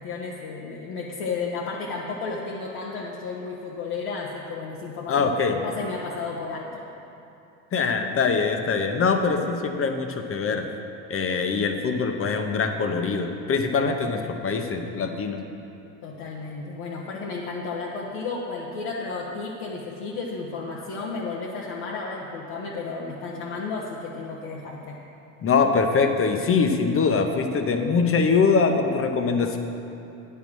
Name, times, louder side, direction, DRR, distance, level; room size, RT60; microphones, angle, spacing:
voice 1, 0.0-6.8 16.0-25.0, left 4 dB, 70° left, -3 dB, 1.1 m, -33 dB
voice 2, 5.1-5.6 7.7-10.7 11.1-15.4 25.4-29.6, left 5 dB, 35° left, 5 dB, 0.9 m, -23 dB
9.3 x 5.6 x 6.1 m, 2.8 s
hypercardioid pair, 75°, 40 cm